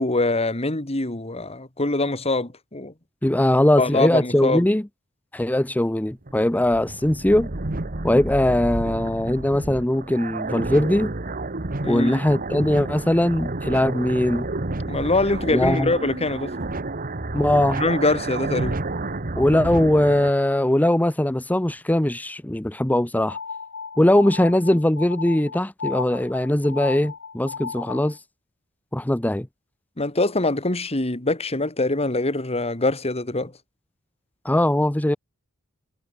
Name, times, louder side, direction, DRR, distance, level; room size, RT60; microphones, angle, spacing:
voice 1, 0.0-2.9 3.8-4.6 11.8-12.2 14.9-16.5 17.8-18.8 30.0-33.5, left 2 dB, 30° left, 2.4 m, -24 dB
voice 2, 3.2-4.8 5.3-7.5 8.0-11.1 11.9-14.5 15.5-15.9 17.3-17.8 19.4-23.4 24.0-28.2 28.9-29.5 34.4-35.2, left 1 dB, 5° left, 0.6 m, -20 dB
sound 1, 6.1-20.3, right 2 dB, 40° right, 1.5 m, -30 dB
sound 2, 23.3-28.2, left 5 dB, 55° left, 2.3 m, -35 dB
head